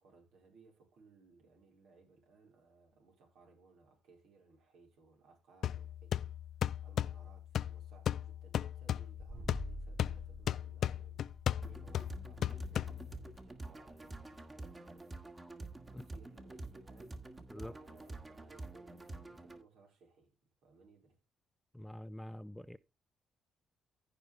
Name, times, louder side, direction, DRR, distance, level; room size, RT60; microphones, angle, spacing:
voice 1, 0.0-6.3 6.8-20.4 20.6-21.2, right 4 dB, 75° right, 4.7 m, -64 dB
sound 1, 5.6-13.4, left 10 dB, 70° left, 0.4 m, -37 dB
sound 2, 9.2-14.8, right 1 dB, 50° right, 6.4 m, -50 dB
sound 3, 11.6-19.6, right 2 dB, 25° right, 2.0 m, -48 dB
voice 2, 21.7-22.8, left 1 dB, 5° left, 0.6 m, -46 dB
15.0 x 5.2 x 3.3 m
supercardioid pair, 65°, 0 cm